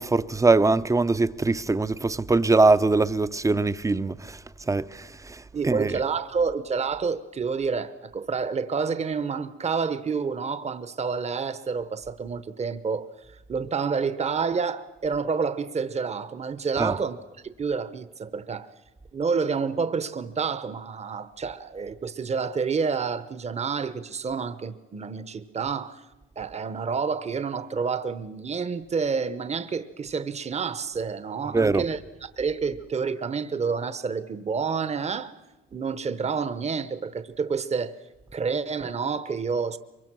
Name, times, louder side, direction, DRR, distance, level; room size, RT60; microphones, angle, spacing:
voice 1, 0.0-6.0 16.8-17.0 31.5-31.9, right 3 dB, 15° right, 0.6 m, -23 dB
voice 2, 5.5-13.1 13.5-17.2 17.6-18.7 19.1-26.0 26.4-35.3 35.7-38.0 38.3-39.8, right 5 dB, 35° right, 0.9 m, -29 dB
23.5 x 22.5 x 6.2 m
cardioid pair, 90°, 20 cm